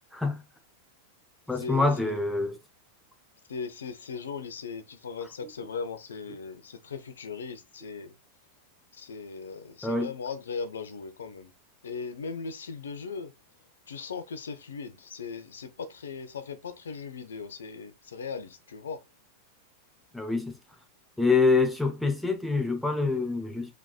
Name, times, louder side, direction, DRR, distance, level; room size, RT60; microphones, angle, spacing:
voice 1, 0.1-0.4 1.5-2.6 9.8-10.1 20.1-20.5 21.2-23.7, left 3 dB, 5° left, 0.9 m, -25 dB
voice 2, 1.5-2.2 3.5-8.2 8.9-11.5 11.8-13.3 13.9-19.0, left 5 dB, 65° left, 0.8 m, -38 dB
4.9 x 3.7 x 2.3 m
figure-of-eight pair, 90°, 0 cm